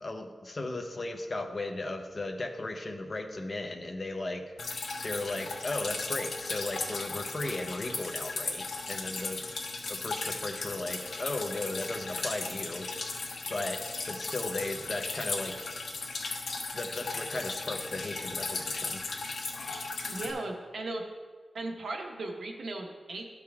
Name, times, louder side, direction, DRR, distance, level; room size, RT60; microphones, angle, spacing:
voice 1, 0.0-9.4 9.9-13.2 13.5-13.8 14.1-15.5 16.7-19.0, left 2 dB, 30° left, 4 dB, 0.7 m, -36 dB
Drip, 4.6-20.3, left 3 dB, 70° left, 0.9 m, -36 dB
voice 2, 20.1-21.0 21.5-23.2, right 2 dB, 70° right, 1 dB, 1.1 m, -37 dB
12.0 x 4.8 x 3.5 m, 1.5 s
wide cardioid pair, 175°, 0 cm